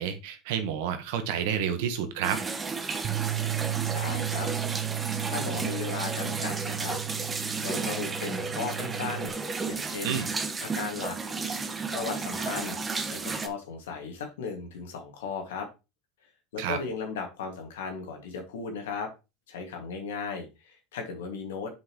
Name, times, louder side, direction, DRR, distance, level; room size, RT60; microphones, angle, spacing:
voice 1, 0.0-2.4 10.0-10.3 16.6-16.8, right 8 dB, 75° right, 9 dB, 1.3 m, -29 dB
sound 1, 2.2-13.5, right 4 dB, 25° right, 1.2 m, -33 dB
Bass guitar, 3.0-9.3, right 16 dB, 50° right, 0.8 m, -34 dB
voice 2, 3.9-4.5 5.3-7.0 7.6-9.4 9.7-10.2 10.6-11.2 11.9-12.8 13.1-15.7 16.5-19.1 19.5-21.7, left 5 dB, 85° left, 3 dB, 2.1 m, -36 dB
7.7 x 5.5 x 3.1 m, 0.27 s
hypercardioid pair, 90°, 0 cm